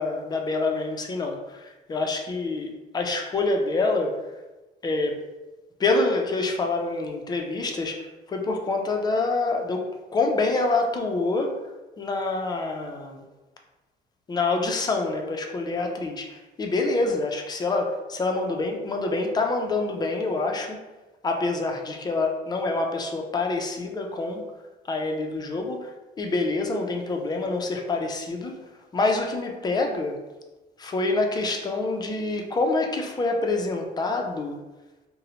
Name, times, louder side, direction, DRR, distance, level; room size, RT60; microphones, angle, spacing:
voice 1, 0.0-4.2 4.8-5.2 5.8-9.8 10.1-11.6 12.0-13.2 14.3-20.8 21.2-24.4 24.9-28.6 28.9-30.2 30.8-34.6, left 3 dB, 25° left, 2 dB, 0.4 m, -26 dB
2.6 x 2.0 x 2.8 m, 1.1 s
cardioid pair, 110°, 17 cm